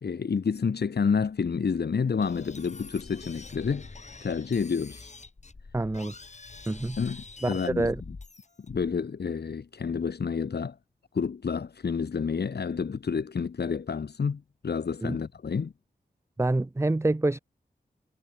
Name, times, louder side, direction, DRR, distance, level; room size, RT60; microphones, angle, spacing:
voice 1, 0.0-3.9 4.2-5.1 7.0-7.9 8.7-10.8 11.1-15.7, left 5 dB, 70° left, 1.9 m, -29 dB
sound 1, 2.2-9.0, left 3 dB, 45° left, 2.6 m, -45 dB
voice 2, 5.7-6.1 6.7-7.0 7.4-8.0 15.0-15.2 16.4-17.4, right 2 dB, 15° right, 0.7 m, -27 dB
wide cardioid pair, 65°, 17 cm